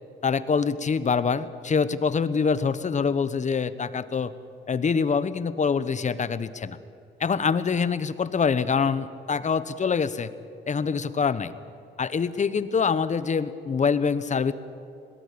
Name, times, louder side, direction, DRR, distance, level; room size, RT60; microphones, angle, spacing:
voice 1, 0.2-4.3 4.7-6.8 7.2-10.3 10.7-11.5 12.0-14.5, left 5 dB, 35° left, 14 dB, 1.1 m, -25 dB
21.5 x 18.0 x 8.7 m, 2.6 s
cardioid pair, 90°, 20 cm